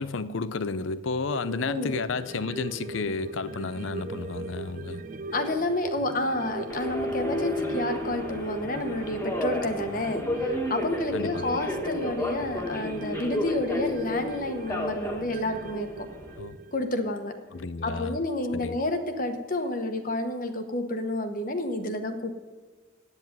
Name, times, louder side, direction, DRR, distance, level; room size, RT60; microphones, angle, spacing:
voice 1, 0.0-5.0 11.1-11.6 16.4-16.6 17.5-18.2 18.5-18.8, left 4 dB, 70° left, 0.6 m, -32 dB
sound 1, 1.3-18.1 18.4-18.5, right 3 dB, 40° right, 0.5 m, -39 dB
voice 2, 1.6-1.9 5.3-16.1 16.7-17.3 17.8-22.3, left 1 dB, 40° left, 1.0 m, -30 dB
Subway metro underground, 6.7-16.4, left 1 dB, 10° left, 1.4 m, -32 dB
9.0 x 8.1 x 9.5 m
head